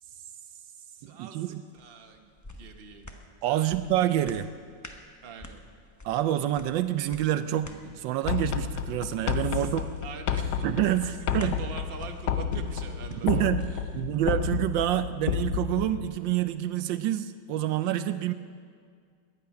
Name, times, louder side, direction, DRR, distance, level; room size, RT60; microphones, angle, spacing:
voice 1, 0.0-2.3 2.6-3.2 3.4-3.7 5.2-5.6 9.5-10.7 11.0-13.9, right 6 dB, 40° right, 4 dB, 1.0 m, -44 dB
voice 2, 1.0-1.6 3.4-4.5 6.0-9.8 10.6-11.6 13.1-13.7 13.9-18.3, right 12 dB, 80° right, 12 dB, 1.3 m, -27 dB
sound 1, 1.8-15.4 15.8-15.9, left 1 dB, 20° left, 0.5 m, -50 dB
sound 2, 8.3-16.1, left 8 dB, 65° left, 1.2 m, -31 dB
18.0 x 11.5 x 5.8 m, 2.1 s
omnidirectional pair, 2.0 m